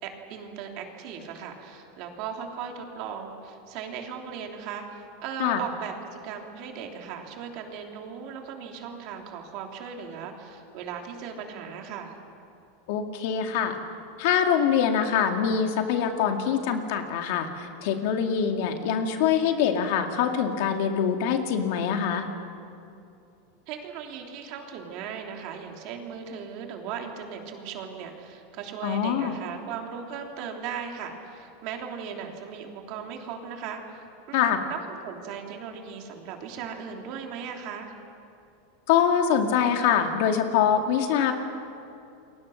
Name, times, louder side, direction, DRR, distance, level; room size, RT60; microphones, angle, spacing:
voice 1, 0.0-5.9 6.2-12.1 23.7-37.9, right 7 dB, 45° right, 2 dB, 3.1 m, -37 dB
voice 2, 12.9-13.8 14.2-22.3 28.8-29.4 34.3-34.6 38.9-41.3, left 8 dB, 60° left, 5 dB, 2.2 m, -24 dB
29.0 x 22.5 x 6.5 m, 2.6 s
supercardioid pair, 160°, 0 cm